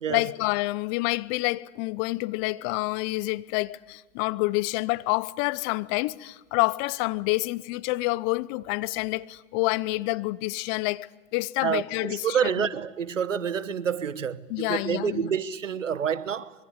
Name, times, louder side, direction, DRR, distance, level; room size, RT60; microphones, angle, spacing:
voice 1, 0.1-12.7 14.5-15.3, left 22 dB, 35° left, 0.8 m, -28 dB
voice 2, 11.6-16.5, right 7 dB, 85° right, 1.3 m, -28 dB
25.5 x 22.5 x 8.2 m
hypercardioid pair, 110°, 37 cm